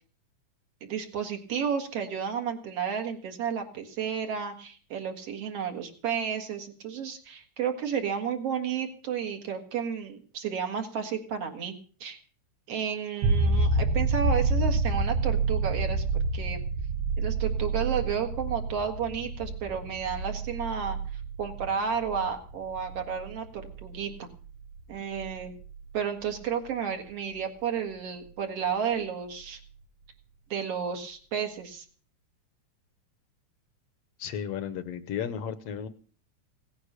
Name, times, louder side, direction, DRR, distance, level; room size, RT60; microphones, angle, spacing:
voice 1, 0.8-11.8 12.0-12.2 12.7-16.0 16.3-16.6 17.2-24.3 24.9-25.5 25.9-29.6 30.5-31.8, right 7 dB, 55° right, 5 dB, 2.8 m, -32 dB
sound 1, 13.2-26.7 29.5-29.6, right 3 dB, 80° right, 2.6 m, -29 dB
voice 2, 34.2-35.9, left 8 dB, 65° left, 13 dB, 1.8 m, -34 dB
17.0 x 9.7 x 6.6 m, 0.41 s
omnidirectional pair, 3.3 m